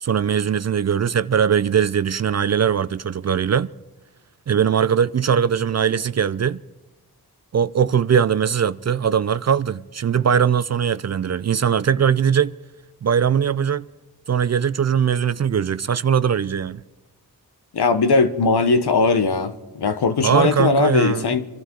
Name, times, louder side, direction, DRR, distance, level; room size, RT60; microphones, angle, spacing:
voice 1, 0.0-3.7 4.5-6.6 7.5-12.5 13.0-13.8 14.3-16.8 20.2-21.3, right 8 dB, 45° right, 0.4 m, -20 dB
voice 2, 17.7-21.4, left 4 dB, 75° left, 1.1 m, -19 dB
24.5 x 12.5 x 3.8 m
cardioid pair, 45°, 39 cm